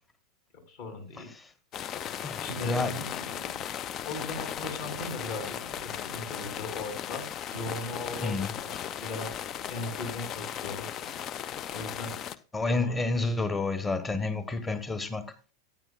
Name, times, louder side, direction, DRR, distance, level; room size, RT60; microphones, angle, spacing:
voice 1, 0.7-1.3 2.4-2.9 4.0-10.9 11.7-12.2 12.6-13.3, left 2 dB, 50° left, 2.8 m, -39 dB
sound 1, 1.7-12.4, left 9 dB, 30° left, 0.4 m, -37 dB
voice 2, 2.2-2.9 8.2-8.5 12.5-15.3, left 3 dB, 15° left, 1.1 m, -30 dB
sound 2, 2.5-3.8 4.6-7.0 7.4-8.6 9.1-9.2 9.6-10.6 10.9-11.3 11.7-12.2, right 1 dB, 90° left, 1.0 m, -45 dB
14.0 x 9.5 x 2.2 m
figure-of-eight pair, 90°, 0 cm